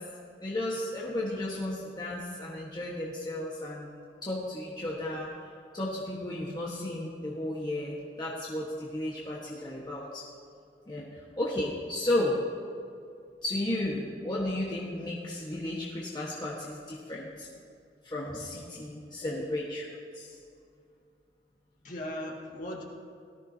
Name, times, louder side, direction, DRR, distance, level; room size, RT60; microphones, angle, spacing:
voice 1, 0.4-3.9 4.2-5.3 5.7-10.2 10.9-11.1 11.3-12.4 13.4-17.5 18.0-19.8 20.1-20.4, left 1 dB, 25° left, -5 dB, 1.3 m, -33 dB
voice 2, 19.2-19.5 21.8-22.8, left 1 dB, 45° left, -2 dB, 2.0 m, -38 dB
18.0 x 13.5 x 2.8 m, 2.4 s
head